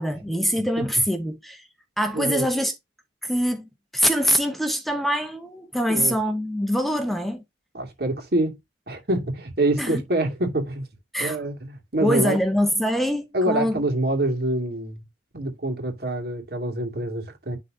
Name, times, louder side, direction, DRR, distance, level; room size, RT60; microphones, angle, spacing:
voice 1, 0.0-1.6 2.0-2.7 3.2-7.4 9.8-10.0 11.1-11.4 12.0-13.8, equal, ahead, 0.9 m, -24 dB
voice 2, 2.1-2.5 5.9-6.1 7.7-8.6 8.9-10.9 11.2-12.4 13.3-15.0 15.3-17.6, right 1 dB, 60° right, 2.5 m, -26 dB
10.5 x 4.0 x 2.7 m
head